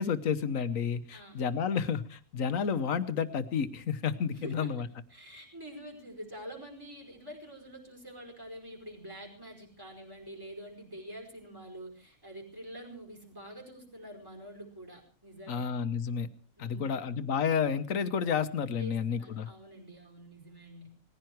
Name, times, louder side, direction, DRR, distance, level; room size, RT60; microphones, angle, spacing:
voice 1, 0.0-4.9 15.5-16.3 16.6-19.5, left 6 dB, 70° left, 12 dB, 1.4 m, -31 dB
voice 2, 4.3-4.7 5.1-15.7 16.6-17.1 18.8-20.9, right 1 dB, 15° right, 0 dB, 5.1 m, -46 dB
19.5 x 15.5 x 4.6 m, 0.41 s
omnidirectional pair, 1.5 m